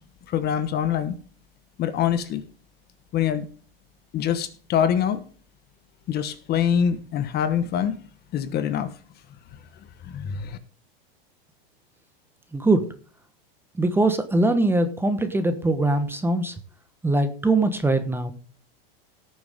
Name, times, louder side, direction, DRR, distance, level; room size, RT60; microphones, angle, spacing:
voice 1, 0.3-1.1 1.8-2.4 3.1-3.5 4.1-5.2 6.1-8.0 8.3-8.9 10.0-10.6, left 9 dB, 35° left, 12 dB, 1.2 m, -24 dB
voice 2, 12.5-12.9 13.8-16.5 17.0-18.3, right 2 dB, 5° right, 9 dB, 1.1 m, -22 dB
18.0 x 7.1 x 3.6 m, 0.39 s
supercardioid pair, 125°, 30 cm